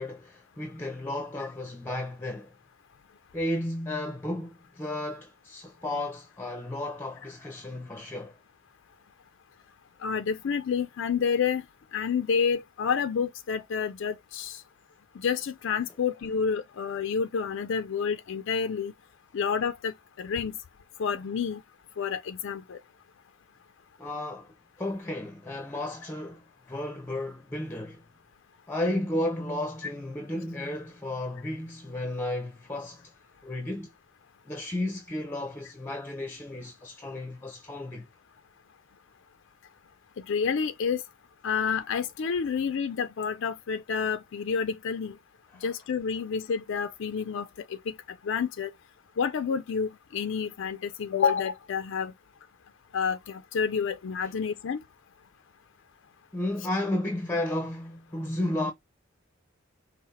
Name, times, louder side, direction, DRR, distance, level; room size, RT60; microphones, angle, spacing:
voice 1, 0.0-2.5 3.3-8.4 24.0-28.0 28.7-33.1 33.4-33.9 34.5-38.1 45.5-45.7 54.2-54.3 56.3-58.7, left 1 dB, 10° left, 0.7 m, -33 dB
voice 2, 10.0-11.6 11.9-14.6 15.2-18.9 19.3-20.6 21.0-21.6 22.0-22.8 40.3-41.0 41.4-45.2 45.6-47.9 48.2-48.7 49.2-52.1 52.9-54.8, left 6 dB, 65° left, 0.4 m, -29 dB
5.6 x 2.1 x 4.1 m
head